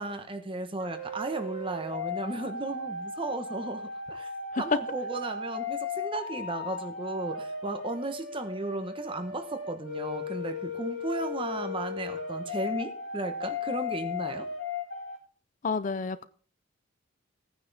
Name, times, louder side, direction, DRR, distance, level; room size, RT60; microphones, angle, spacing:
voice 1, 0.0-4.3 4.6-14.5, right 2 dB, 25° right, 1.1 m, -35 dB
sound 1, 0.8-15.2, left 4 dB, 75° left, 2.5 m, -36 dB
voice 2, 15.6-16.3, left 4 dB, 40° left, 0.5 m, -30 dB
16.5 x 9.3 x 3.4 m
head